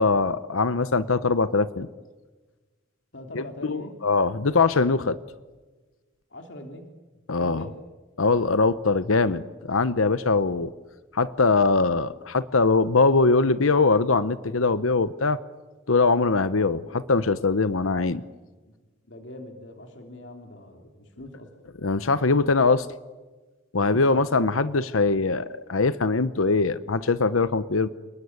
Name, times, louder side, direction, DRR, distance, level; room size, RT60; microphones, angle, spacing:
voice 1, 0.0-1.9 3.7-5.2 7.3-7.6 8.2-10.7 11.1-15.4 15.9-18.2 21.8-22.9 23.7-27.9, left 3 dB, 90° left, 14 dB, 0.9 m, -22 dB
voice 2, 3.1-3.9 6.3-6.9 7.3-7.8 18.6-18.8 19.1-21.5 23.8-24.2, left 1 dB, 60° left, 4 dB, 3.3 m, -42 dB
29.5 x 20.5 x 9.6 m, 1.3 s
head